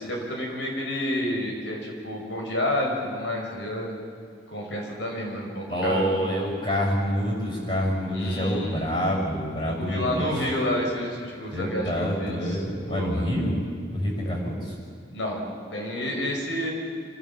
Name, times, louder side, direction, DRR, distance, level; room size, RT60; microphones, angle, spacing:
voice 1, 0.0-3.9 4.5-6.2 8.1-8.8 9.6-12.6 12.9-13.3 15.1-15.4 15.7-16.7, left 1 dB, 80° left, 0 dB, 5.6 m, -29 dB
voice 2, 5.7-10.4 11.5-14.7, equal, 30° left, -2 dB, 6.7 m, -27 dB
26.5 x 16.5 x 7.4 m, 2.3 s
head